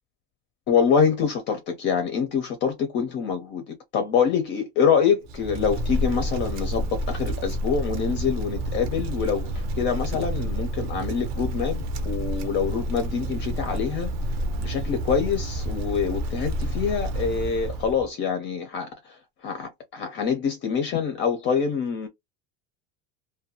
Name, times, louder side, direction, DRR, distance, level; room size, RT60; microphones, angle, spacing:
voice 1, 0.7-14.1 14.6-19.2 19.4-22.1, left 6 dB, 35° left, 0.4 m, -25 dB
Wind, 5.2-18.1, right 1 dB, 55° right, 0.6 m, -29 dB
2.5 x 2.2 x 2.7 m
cardioid pair, 180°, 33 cm